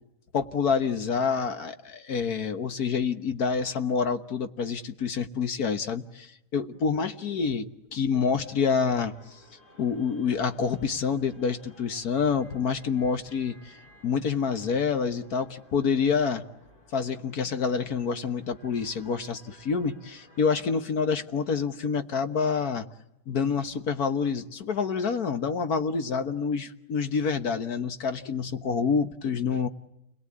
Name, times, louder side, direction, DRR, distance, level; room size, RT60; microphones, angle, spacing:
voice 1, 0.3-6.3 6.5-9.1 9.8-13.6 14.0-16.4 16.9-22.9 23.3-29.7, left 5 dB, 60° left, 8 dB, 1.7 m, -27 dB
sound 1, 8.4-20.7, equal, 30° left, 8.4 m, -56 dB
29.5 x 22.0 x 8.6 m, 0.88 s
omnidirectional pair, 1.9 m